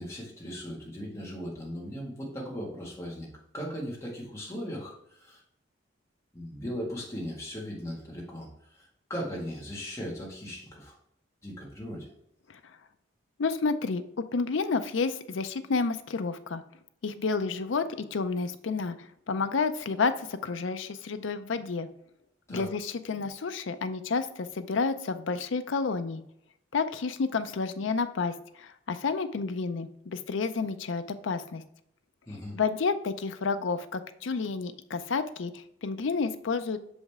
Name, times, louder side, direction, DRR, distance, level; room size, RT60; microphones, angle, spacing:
voice 1, 0.0-3.3 3.5-5.4 6.3-10.9 11.4-12.1 22.5-22.7 32.3-32.6, equal, 15° left, -4 dB, 1.8 m, -38 dB
voice 2, 13.4-16.6 17.0-17.9 18.1-21.9 22.5-26.2 26.7-31.6 32.5-36.8, left 4 dB, 70° left, 10 dB, 0.5 m, -30 dB
6.3 x 5.2 x 3.5 m, 0.75 s
head